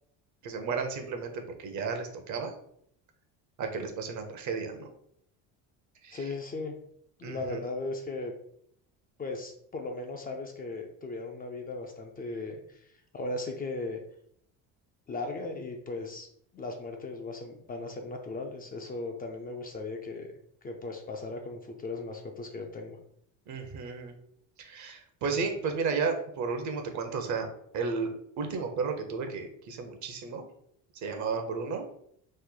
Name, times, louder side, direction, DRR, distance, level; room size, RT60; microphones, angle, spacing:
voice 1, 0.4-2.5 3.6-4.9 6.0-6.2 7.2-7.6 23.5-24.1 24.6-30.4 31.0-31.9, right 5 dB, 55° right, 5 dB, 0.8 m, -33 dB
voice 2, 6.1-6.7 7.2-8.3 9.2-14.0 15.1-16.3 16.5-20.3 20.6-23.0, left 3 dB, 25° left, 3 dB, 0.4 m, -37 dB
3.2 x 2.1 x 3.7 m, 0.69 s
supercardioid pair, 100°, 36 cm